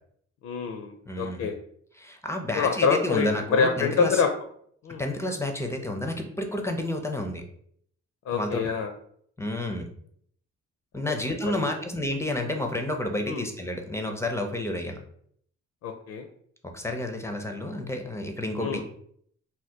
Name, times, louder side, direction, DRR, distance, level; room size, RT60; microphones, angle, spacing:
voice 1, 0.4-1.5 2.6-4.3 4.8-5.0 8.3-8.9 11.4-11.7 13.3-13.4 15.8-16.2 18.6-18.8, left 5 dB, 60° left, 5 dB, 0.5 m, -26 dB
voice 2, 1.1-1.5 1.9-4.2 5.0-7.4 8.3-8.7 9.4-9.9 10.9-15.0 16.6-18.8, left 1 dB, 10° left, 4 dB, 0.5 m, -30 dB
2.8 x 2.2 x 3.3 m, 0.65 s
cardioid pair, 90°, 30 cm